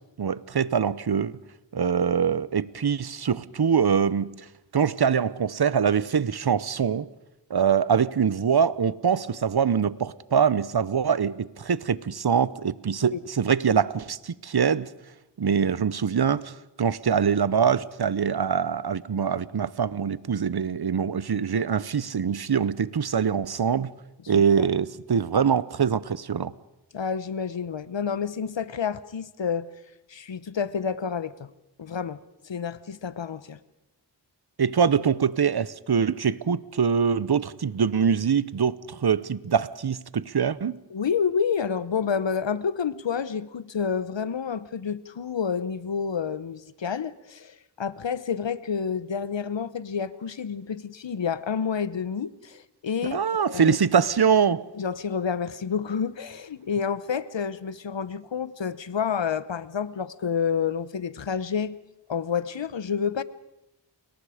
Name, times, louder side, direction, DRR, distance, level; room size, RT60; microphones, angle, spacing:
voice 1, 0.2-1.3 1.7-4.3 4.7-7.1 7.5-14.9 15.4-23.9 24.3-26.5 34.6-40.8 53.1-54.7, right 7 dB, 60° right, 0.9 m, -24 dB
voice 2, 26.9-29.7 30.1-31.5 31.8-33.6 40.9-53.8 54.7-61.8 62.1-63.2, left 6 dB, 80° left, 1.0 m, -29 dB
29.5 x 21.5 x 5.0 m
wide cardioid pair, 45°, 43 cm